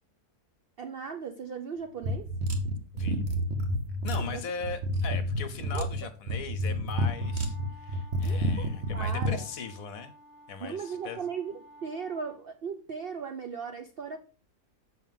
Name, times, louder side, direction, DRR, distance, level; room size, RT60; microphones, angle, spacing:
voice 1, 0.8-2.3 4.1-4.4 5.7-5.9 8.2-9.4 10.6-11.5 11.8-14.2, right 6 dB, 85° right, 0.5 m, -37 dB
sound 1, 2.0-9.4, equal, 45° right, 1.1 m, -29 dB
voice 2, 4.0-10.1 10.5-11.3, left 6 dB, 65° left, 1.1 m, -39 dB
sound 2, 6.9-12.4, equal, 70° right, 4.9 m, -53 dB
7.5 x 6.3 x 3.6 m
omnidirectional pair, 1.8 m